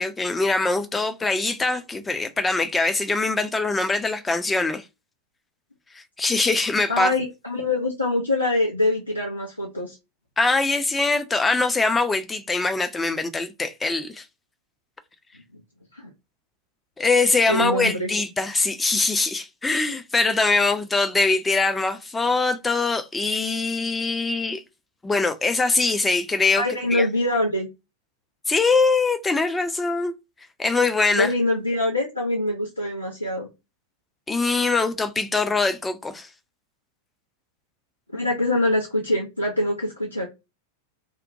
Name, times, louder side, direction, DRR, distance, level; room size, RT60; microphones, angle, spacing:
voice 1, 0.0-4.8 6.2-7.1 10.4-14.2 17.0-24.6 25.0-26.6 26.9-27.1 28.5-30.1 30.6-31.3 34.3-36.3, left 3 dB, 10° left, 0.4 m, -23 dB
voice 2, 6.9-10.0 15.9-16.0 17.5-18.1 26.6-27.7 31.1-33.5 38.1-40.3, left 1 dB, 85° left, 0.7 m, -24 dB
2.6 x 2.1 x 2.6 m
figure-of-eight pair, 90°, 0 cm